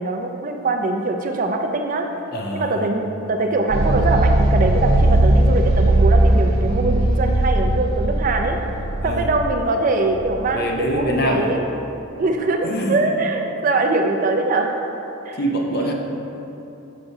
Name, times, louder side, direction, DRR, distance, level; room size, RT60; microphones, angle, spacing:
voice 1, 0.0-2.1 2.5-8.6 9.0-11.7 12.2-14.8 15.3-15.4 15.7-15.9, right 2 dB, 35° right, 3 dB, 0.3 m, -22 dB
voice 2, 2.3-2.7 9.0-9.3 10.5-11.5 12.6-13.1 15.4-15.9, equal, 45° left, 1 dB, 0.6 m, -24 dB
sound 1, 3.7-11.0, right 1 dB, 70° right, 0.7 m, -18 dB
6.7 x 5.8 x 2.7 m, 3.0 s
head